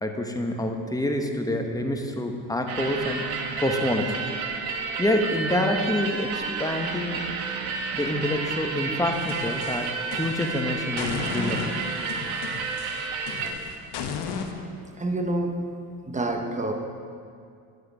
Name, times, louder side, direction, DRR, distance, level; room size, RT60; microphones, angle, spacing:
voice 1, 0.0-3.2 3.6-4.2 5.0-7.2 7.9-11.9, left 1 dB, 10° left, 3 dB, 1.0 m, -27 dB
sound 1, 2.7-13.5, right 4 dB, 80° right, 1.1 m, -31 dB
sound 2, 9.1-10.6 11.0-14.5, left 6 dB, 60° left, 1.1 m, -34 dB
voice 2, 15.0-15.6 16.1-16.7, right 2 dB, 15° right, 4 dB, 1.1 m, -27 dB
10.5 x 6.6 x 5.0 m, 2.3 s
supercardioid pair, 70°, 46 cm